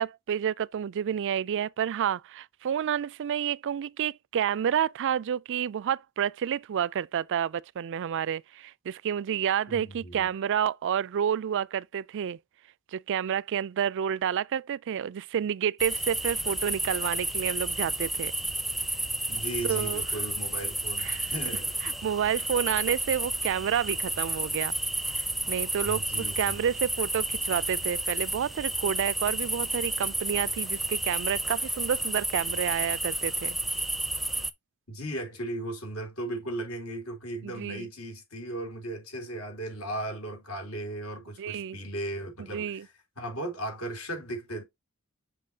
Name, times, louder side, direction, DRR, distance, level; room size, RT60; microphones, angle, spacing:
voice 1, 0.0-12.4 12.9-18.3 19.6-20.0 21.0-21.3 21.8-24.7 25.1-33.6 37.4-37.9 41.4-41.8 42.5-42.9, right 8 dB, 55° right, 0.3 m, -29 dB
voice 2, 9.7-10.3 19.3-21.7 25.8-26.7 34.9-44.6, right 1 dB, 75° left, 4.1 m, -36 dB
sound 1, 15.8-34.5, right 1 dB, ahead, 0.6 m, -31 dB
7.5 x 5.7 x 2.8 m
head